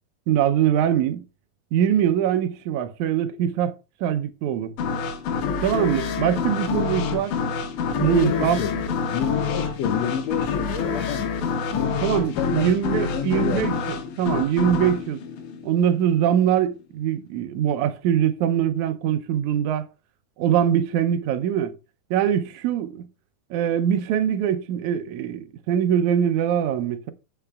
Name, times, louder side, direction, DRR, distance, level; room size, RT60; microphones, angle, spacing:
voice 1, 0.3-1.3 1.7-3.7 4.0-4.7 5.6-7.4 8.0-8.6 12.0-15.2 15.6-19.9 20.4-21.8 22.1-23.1 23.5-27.1, right 9 dB, 75° right, 1.8 m, -23 dB
sound 1, 4.8-16.2, left 5 dB, 70° left, 2.5 m, -27 dB
voice 2, 8.0-8.8 9.1-11.3 11.7-12.7 13.1-13.7, left 10 dB, 90° left, 1.5 m, -29 dB
17.0 x 5.9 x 2.3 m
omnidirectional pair, 4.0 m